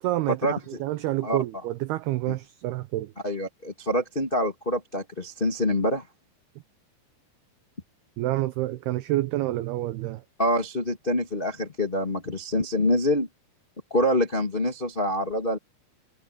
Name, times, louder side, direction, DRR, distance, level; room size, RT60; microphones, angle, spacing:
voice 1, 0.0-3.1 8.2-10.2, right 16 dB, 90° right, 2.2 m, -28 dB
voice 2, 3.2-6.0 10.4-13.3 13.9-15.6, left 1 dB, 40° left, 0.7 m, -25 dB
omnidirectional pair, 5.4 m